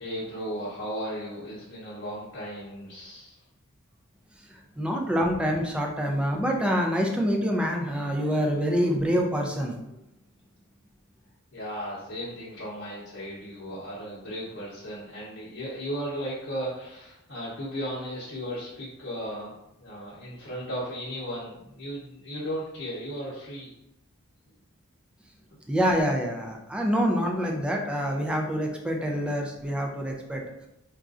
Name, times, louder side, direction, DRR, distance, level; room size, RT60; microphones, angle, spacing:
voice 1, 0.0-3.4 11.5-19.5 19.8-23.7, equal, 65° left, -9 dB, 0.9 m, -35 dB
voice 2, 4.5-9.8 25.7-30.4, equal, 5° right, 0 dB, 0.4 m, -26 dB
4.2 x 2.4 x 2.4 m, 0.85 s
head